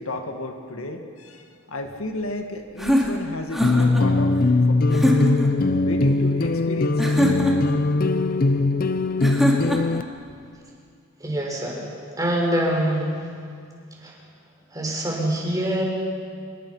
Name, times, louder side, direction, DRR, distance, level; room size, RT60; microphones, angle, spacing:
voice 1, 0.0-4.4 4.7-5.1 5.8-7.2, left 2 dB, 85° left, 5 dB, 1.9 m, -33 dB
sound 1, 2.8-4.1 4.9-5.5 7.0-7.8 9.2-10.0, equal, ahead, 2.7 m, -23 dB
sound 2, 3.6-10.0, left 2 dB, 45° left, 0.6 m, -20 dB
voice 2, 11.2-11.8 12.2-13.2 14.0-14.1 14.7-15.8, right 1 dB, 20° right, -1 dB, 4.9 m, -24 dB
26.0 x 22.0 x 5.6 m, 2.2 s
head